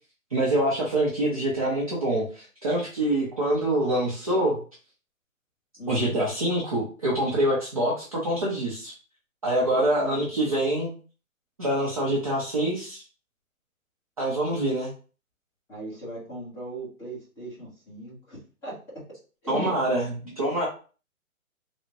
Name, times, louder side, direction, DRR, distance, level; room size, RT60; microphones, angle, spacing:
voice 1, 0.3-4.6 5.9-8.9 9.4-10.9 11.6-13.0 14.2-14.9 19.5-20.7, right 1 dB, 25° right, -6 dB, 0.4 m, -25 dB
voice 2, 5.8-6.2 9.7-10.1 15.7-18.8 19.4-19.7 20.2-20.5, right 1 dB, 5° left, -9 dB, 0.9 m, -38 dB
3.4 x 2.1 x 2.8 m, 0.38 s
hypercardioid pair, 145°, 42 cm